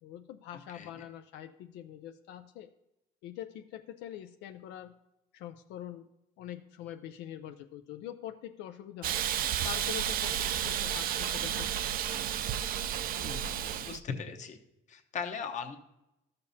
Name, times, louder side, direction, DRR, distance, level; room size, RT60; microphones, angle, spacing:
voice 1, 0.0-2.7 3.2-5.0 5.3-6.1 6.4-9.2 9.6-11.9, left 11 dB, 85° left, 8 dB, 0.4 m, -44 dB
Hiss, 9.0-14.0, right 10 dB, 60° right, 0.4 m, -32 dB
voice 2, 13.2-14.6 14.9-15.8, left 6 dB, 45° left, 5 dB, 1.0 m, -39 dB
13.0 x 6.8 x 2.7 m, 0.90 s
cardioid pair, 110°, 17 cm